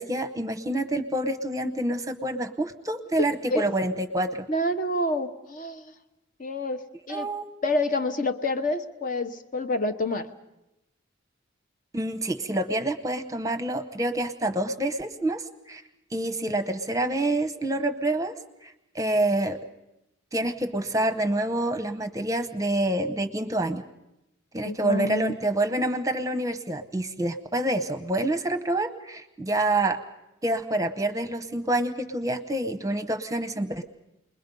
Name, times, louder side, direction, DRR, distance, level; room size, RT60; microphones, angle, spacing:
voice 1, 0.0-4.5 7.1-7.4 11.9-15.8 16.1-18.4 18.6-19.6 20.3-23.8 24.5-30.0 30.4-33.8, right 1 dB, 15° right, 10 dB, 0.8 m, -27 dB
voice 2, 4.5-5.9 6.4-7.3 7.6-10.3 24.6-25.4, left 1 dB, 40° left, 8 dB, 1.0 m, -28 dB
29.0 x 21.5 x 5.4 m, 0.91 s
head